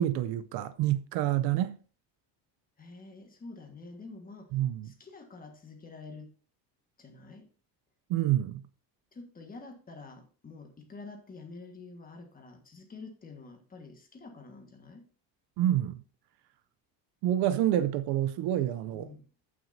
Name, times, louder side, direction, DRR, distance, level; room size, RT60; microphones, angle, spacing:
voice 1, 0.0-1.8 4.5-4.9 8.1-8.6 15.6-16.0 17.2-19.1, right 12 dB, 65° right, 0.6 m, -28 dB
voice 2, 2.8-4.5 4.8-6.3 7.0-7.5 9.1-15.0 18.9-19.3, left 3 dB, 20° left, 1.5 m, -47 dB
14.5 x 6.1 x 2.7 m
cardioid pair, 165°, 43 cm